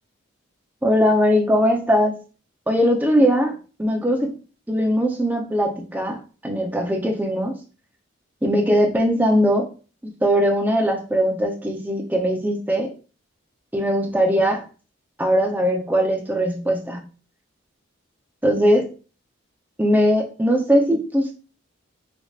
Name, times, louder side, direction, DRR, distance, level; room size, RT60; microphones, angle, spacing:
voice 1, 0.8-2.2 2.7-4.3 4.7-7.6 8.4-9.7 10.2-12.9 13.7-14.6 15.2-17.1 18.4-18.9 19.8-21.3, equal, 10° right, 1 dB, 0.6 m, -20 dB
5.2 x 2.9 x 2.4 m, 0.36 s
head